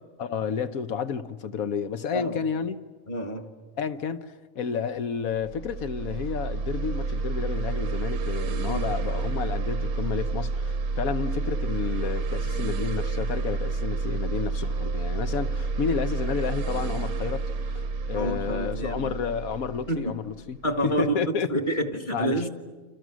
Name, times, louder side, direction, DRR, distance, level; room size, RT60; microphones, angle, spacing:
voice 1, 0.2-2.8 3.8-20.6 20.8-21.5 22.1-22.5, left 6 dB, 75° left, 1.4 m, -31 dB
voice 2, 2.1-2.4 3.1-3.5 8.6-8.8 18.1-19.1 19.9-20.1 20.6-21.2 21.5-22.5, right 1 dB, 35° left, 1.9 m, -28 dB
sound 1, 5.4-20.8, right 3 dB, 80° right, 1.4 m, -29 dB
29.5 x 27.5 x 6.3 m
omnidirectional pair, 1.5 m